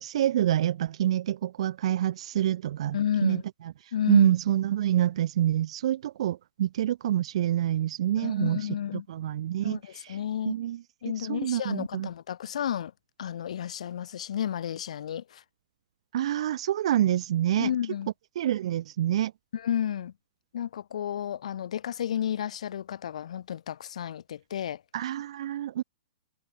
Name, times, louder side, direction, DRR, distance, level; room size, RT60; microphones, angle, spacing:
voice 1, 0.0-3.4 4.1-8.6 9.1-10.2 10.5-10.8 11.2-12.1 16.1-17.7 18.4-19.3 24.9-25.8, right 12 dB, 60° right, 1.7 m, -26 dB
voice 2, 2.9-3.4 3.9-4.3 8.2-9.0 9.6-10.6 11.0-12.9 13.2-15.4 17.6-18.1 19.5-20.1 20.5-24.8, left 9 dB, 70° left, 6.7 m, -32 dB
hypercardioid pair, 160°, 4 cm